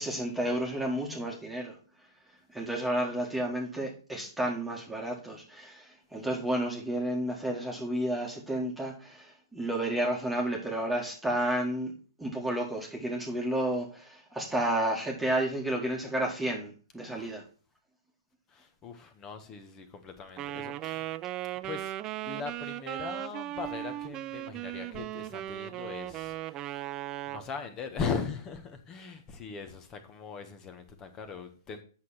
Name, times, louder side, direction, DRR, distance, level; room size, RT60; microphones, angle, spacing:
voice 1, 0.0-1.8 2.5-17.4, right 1 dB, 5° right, 1.8 m, -31 dB
voice 2, 17.0-17.3 18.5-21.1 21.6-26.9 27.3-31.8, left 5 dB, 25° left, 1.4 m, -39 dB
Wind instrument woodwind instrument, 20.4-27.5, right 14 dB, 25° right, 0.4 m, -37 dB
8.2 x 6.4 x 4.3 m
hypercardioid pair, 120°, 2 cm